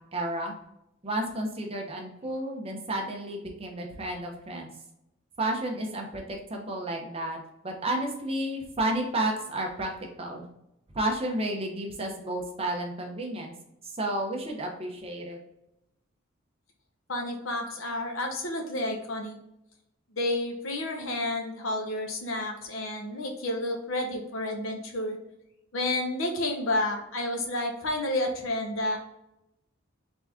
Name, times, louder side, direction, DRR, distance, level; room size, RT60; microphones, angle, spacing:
voice 1, 0.1-0.5 1.0-4.7 5.4-7.4 7.6-9.9 10.2-10.4 10.9-13.5 13.8-15.4, right 1 dB, 30° right, 1 dB, 0.9 m, -31 dB
voice 2, 17.1-19.4 20.1-25.2 25.7-29.0, left 1 dB, 75° left, 3 dB, 1.0 m, -30 dB
4.0 x 3.5 x 3.5 m, 0.85 s
head